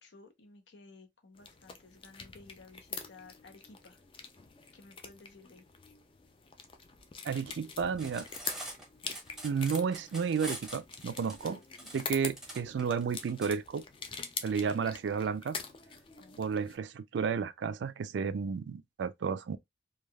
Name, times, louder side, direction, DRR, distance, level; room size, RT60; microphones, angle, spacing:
voice 1, 0.0-4.0 4.7-5.7 11.9-12.1 14.8-14.9 16.2-16.7, left 3 dB, 75° left, 0.7 m, -56 dB
sound 1, 1.3-16.8, left 5 dB, 30° left, 0.4 m, -45 dB
voice 2, 7.2-8.3 9.4-11.6 11.9-13.8 14.4-15.6 16.4-19.6, right 6 dB, 75° right, 0.3 m, -32 dB
Cutlery silverware, 7.9-13.5, right 1 dB, 5° right, 0.7 m, -44 dB
3.3 x 2.3 x 2.2 m
head